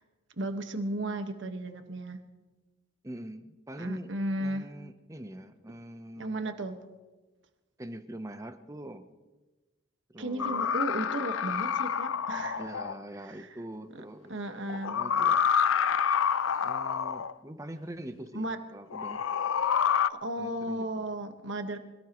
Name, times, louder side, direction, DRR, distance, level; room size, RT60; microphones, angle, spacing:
voice 1, 0.4-2.2 3.8-4.7 6.2-6.8 10.2-12.6 13.2-13.5 13.9-14.0 14.3-15.0 18.3-18.6 20.1-21.8, right 1 dB, 65° right, 6 dB, 1.6 m, -34 dB
voice 2, 3.0-6.4 7.8-9.1 10.1-10.7 12.6-14.3 14.7-15.4 16.6-19.2 20.4-21.1, right 1 dB, 15° right, 9 dB, 0.9 m, -43 dB
sound 1, 10.4-13.0 14.7-17.3 18.9-20.1, left 7 dB, 80° left, 0.5 m, -28 dB
25.0 x 18.5 x 3.1 m, 1.2 s
head